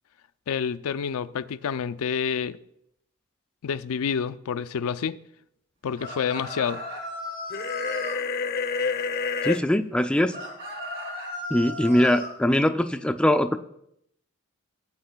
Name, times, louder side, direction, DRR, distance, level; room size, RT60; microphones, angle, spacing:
voice 1, 0.5-2.6 3.6-5.2 5.8-6.8, left 7 dB, 85° left, 0.4 m, -28 dB
sound 1, 6.0-8.2 10.3-12.3, left 1 dB, 45° right, 3.0 m, -36 dB
sound 2, 7.5-9.6, left 5 dB, 45° left, 0.6 m, -28 dB
voice 2, 9.4-10.3 11.5-13.6, left 1 dB, 5° left, 0.3 m, -22 dB
17.0 x 8.7 x 2.3 m
head